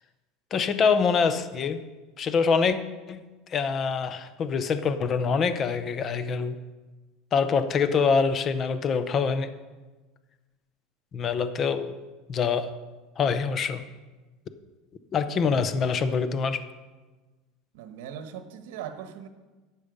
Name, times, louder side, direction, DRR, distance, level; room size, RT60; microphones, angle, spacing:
voice 1, 0.5-1.8 2.2-2.8 3.1-3.2 3.5-6.6 7.3-9.5 11.1-12.0 12.3-12.7 13.2-13.8 15.1-16.6, left 5 dB, 30° left, 11 dB, 0.6 m, -25 dB
voice 2, 17.7-19.3, right 9 dB, 85° right, 8 dB, 1.2 m, -39 dB
12.0 x 8.4 x 5.2 m, 1.2 s
cardioid pair, 155°, 0 cm